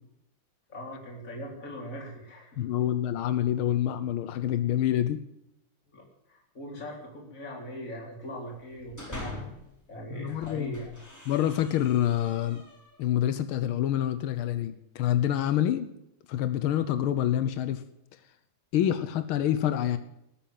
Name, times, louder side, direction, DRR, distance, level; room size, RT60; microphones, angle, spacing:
voice 1, 0.7-2.6 5.9-9.3 9.9-10.8, equal, 40° left, -2 dB, 4.4 m, -40 dB
voice 2, 2.6-5.2 10.1-10.8 11.3-12.6 13.0-15.9 16.3-17.8 18.7-20.0, left 11 dB, 90° left, 11 dB, 1.7 m, -27 dB
sound 1, 8.6-9.7 10.2-13.0, left 2 dB, 10° left, 3.8 m, -44 dB
19.0 x 8.7 x 7.6 m, 0.83 s
omnidirectional pair, 2.2 m